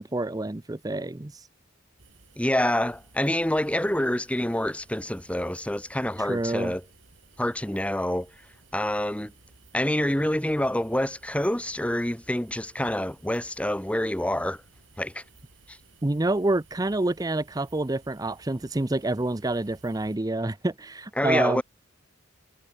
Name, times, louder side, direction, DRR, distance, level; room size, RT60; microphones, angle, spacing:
voice 1, 0.0-1.3 6.2-6.7 16.0-21.6, right 2 dB, 20° right, 0.6 m, -27 dB
sound 1, 2.0-20.2, right 3 dB, 65° right, 4.8 m, -57 dB
voice 2, 2.4-6.8 7.4-8.3 8.7-9.3 9.7-14.6 15.0-15.2 15.7-15.8 21.2-21.6, left 1 dB, 5° left, 1.1 m, -27 dB
head